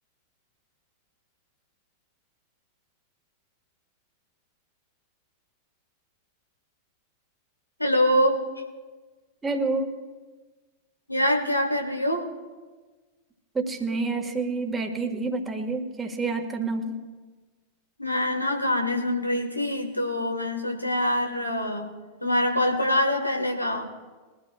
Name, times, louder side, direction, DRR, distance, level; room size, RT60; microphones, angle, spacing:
voice 1, 7.8-8.4 11.1-12.3 18.0-21.9 22.2-23.9, left 1 dB, 85° left, 2 dB, 1.8 m, -24 dB
voice 2, 9.4-9.9 13.5-17.0, right 3 dB, 15° right, 3 dB, 1.9 m, -28 dB
22.5 x 13.0 x 2.5 m, 1.3 s
figure-of-eight pair, 90°, 0 cm